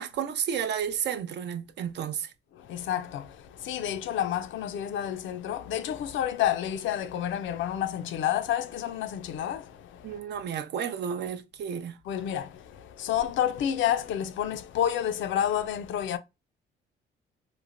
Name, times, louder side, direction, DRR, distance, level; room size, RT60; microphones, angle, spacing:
voice 1, 0.0-2.3 10.0-12.0, right 8 dB, 60° right, 0.5 m, -32 dB
voice 2, 2.5-10.2 12.1-16.2, left 10 dB, 75° left, 0.4 m, -30 dB
3.1 x 2.0 x 2.4 m
cardioid pair, 90°, 20 cm